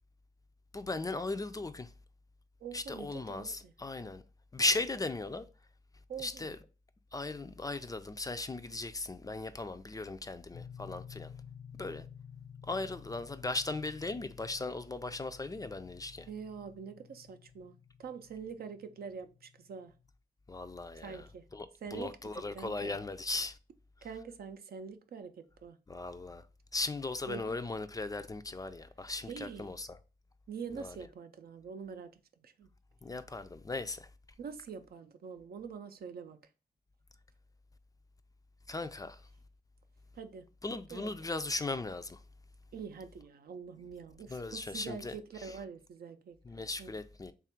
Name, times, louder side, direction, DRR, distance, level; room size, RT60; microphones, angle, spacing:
voice 1, 0.7-1.9 2.7-4.2 4.5-5.4 6.2-6.6 7.1-11.3 11.7-12.1 12.6-16.3 20.5-21.3 21.5-23.6 25.9-26.5 26.7-30.0 30.7-31.0 33.0-34.1 38.7-39.3 40.6-42.2 44.3-45.5 46.4-47.3, left 2 dB, 20° left, 0.3 m, -37 dB
voice 2, 2.6-3.7 6.1-6.6 16.3-17.7 18.0-19.9 21.0-21.4 21.8-23.0 24.0-25.8 27.3-27.6 29.3-29.7 30.5-32.1 32.4-32.7 34.4-36.4 40.1-40.5 40.9-41.1 42.7-46.9, right 6 dB, 70° right, 0.5 m, -45 dB
sound 1, 10.5-20.1, left 7 dB, 70° left, 0.5 m, -53 dB
3.3 x 2.4 x 4.3 m
cardioid pair, 75°, 16 cm